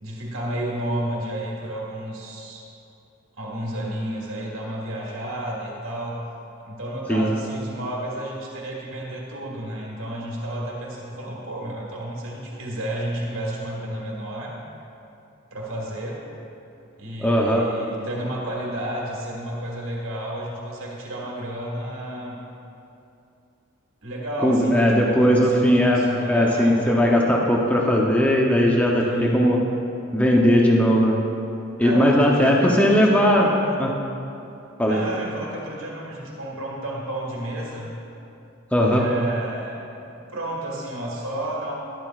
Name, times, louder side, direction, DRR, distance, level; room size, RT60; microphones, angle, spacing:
voice 1, 0.0-2.7 3.4-6.2 6.6-14.6 15.5-16.3 17.0-22.4 24.0-27.1 29.0-29.5 31.8-33.8 34.9-37.9 38.8-39.8 40.3-41.7, right 1 dB, 80° right, -3 dB, 1.7 m, -31 dB
voice 2, 17.2-17.6 24.4-26.0 26.3-29.6 30.1-31.2 31.8-33.4 33.8-33.9 34.8-35.0 38.7-39.0, equal, 5° left, -2 dB, 0.7 m, -18 dB
11.5 x 11.5 x 2.4 m, 2.7 s
head